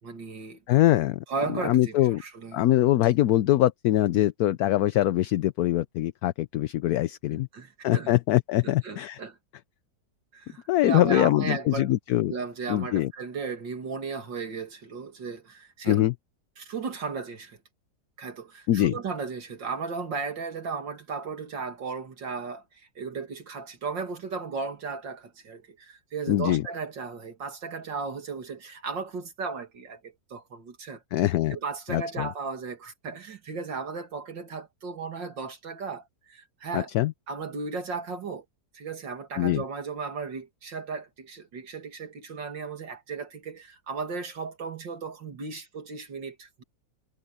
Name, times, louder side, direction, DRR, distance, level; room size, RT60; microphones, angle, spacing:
voice 1, 0.0-0.6 1.3-2.6 7.3-8.1 8.6-9.4 10.3-11.9 12.3-16.0 16.6-17.6 18.2-36.9 37.3-38.4 38.7-46.6, right 5 dB, 80° right, 3.1 m, -35 dB
voice 2, 0.7-1.2 1.5-2.2 2.5-7.5 7.8-9.2 10.7-12.3 12.7-13.1 15.8-16.1 18.7-18.9 26.3-26.7 31.1-31.6 31.9-32.3 36.7-37.1 39.4-39.6, left 14 dB, 70° left, 1.0 m, -23 dB
omnidirectional pair, 2.0 m